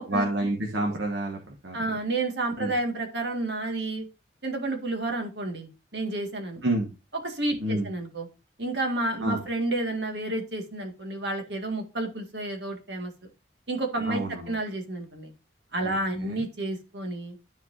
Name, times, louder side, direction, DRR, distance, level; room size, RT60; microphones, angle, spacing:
voice 1, 0.1-1.8 2.6-2.7 6.6-6.9 7.6-7.9 9.2-9.4 14.1-14.5 15.8-16.4, right 1 dB, 85° right, 1 dB, 1.6 m, -29 dB
voice 2, 1.7-4.1 4.4-6.6 7.2-8.3 8.6-13.1 13.7-15.3 15.7-17.4, right 2 dB, 70° right, 3 dB, 2.0 m, -30 dB
13.0 x 4.6 x 2.7 m, 0.29 s
head